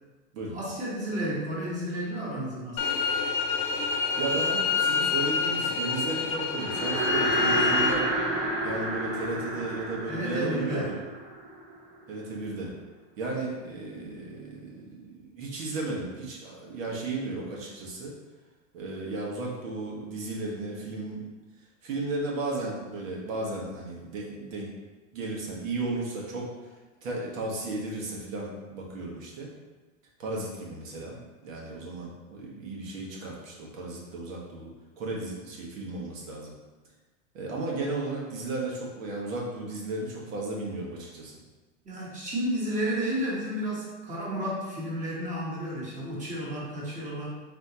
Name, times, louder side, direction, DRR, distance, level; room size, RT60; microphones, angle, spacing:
voice 1, 0.5-3.0 10.1-11.0 41.8-47.3, equal, 20° right, -5 dB, 1.2 m, -32 dB
sound 1, 2.8-7.9, left 5 dB, 45° left, 0.5 m, -27 dB
voice 2, 4.2-8.1 8.6-10.9 12.1-12.7 13.2-18.1 18.7-21.2 21.8-24.7 25.1-26.5 27.0-29.5 30.2-31.2 31.4-34.7 35.0-36.5 37.3-41.3, right 2 dB, 85° right, -3 dB, 1.3 m, -34 dB
sound 2, 6.5-11.9, right 1 dB, 50° right, 1.2 m, -30 dB
4.2 x 3.6 x 2.8 m, 1.2 s
supercardioid pair, 135°, 39 cm